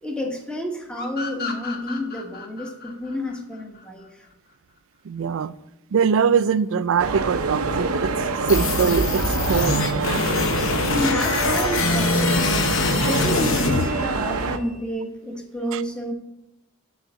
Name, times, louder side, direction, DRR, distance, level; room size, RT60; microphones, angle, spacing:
voice 1, 0.0-4.2 10.9-12.5 12.8-16.1, left 1 dB, 5° left, 1.2 m, -30 dB
sound 1, 0.9-4.3, left 4 dB, 50° left, 1.4 m, -35 dB
voice 2, 5.0-5.5 5.9-8.1 8.5-9.9 15.7-15.8, right 6 dB, 65° right, 0.4 m, -22 dB
sound 2, 7.0-14.6, right 3 dB, 85° right, 0.8 m, -25 dB
sound 3, 8.5-14.5, left 3 dB, 65° left, 0.8 m, -24 dB
11.5 x 4.0 x 6.2 m
head